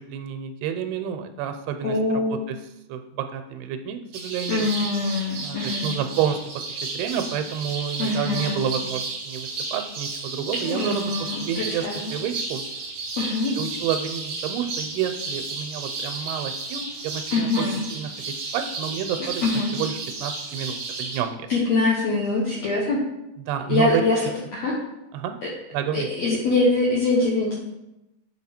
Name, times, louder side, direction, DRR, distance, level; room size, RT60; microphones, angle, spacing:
voice 1, 0.1-2.6 2.9-4.7 5.4-5.6 5.8-12.6 13.6-17.5 18.0-18.1 18.5-21.5 23.5-24.0 25.1-25.4 25.7-26.1, right 8 dB, 90° right, 7 dB, 2.6 m, -29 dB
voice 2, 1.8-2.4 4.5-5.9 8.0-8.7 10.6-12.1 13.2-13.5 17.3-17.8 19.4-19.7 21.5-23.0 23.7-24.2 24.5-24.7 25.9-27.5, left 3 dB, 75° left, -4 dB, 1.5 m, -23 dB
sound 1, 4.1-21.2, right 3 dB, 65° right, 1.3 m, -33 dB
8.7 x 4.2 x 4.3 m, 0.93 s
omnidirectional pair, 4.5 m